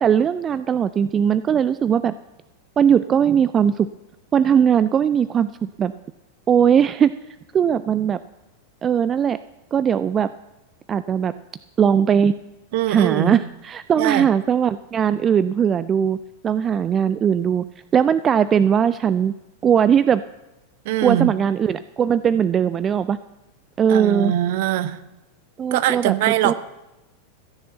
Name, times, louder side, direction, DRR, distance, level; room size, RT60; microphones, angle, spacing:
voice 1, 0.0-2.1 2.8-3.9 4.3-5.9 6.5-7.1 7.5-8.2 8.8-9.4 9.7-10.3 10.9-11.3 11.8-12.3 12.9-16.2 16.4-17.6 17.9-19.3 19.6-20.2 21.0-23.2 23.8-24.3 25.6-26.1 26.4-26.5, right 8 dB, 25° right, 15 dB, 0.3 m, -19 dB
voice 2, 12.7-13.4 14.0-14.3 20.8-21.3 23.9-25.0 25.7-26.5, right 13 dB, 50° right, 14 dB, 0.7 m, -21 dB
14.5 x 6.7 x 7.9 m, 0.99 s
figure-of-eight pair, 90°, 0 cm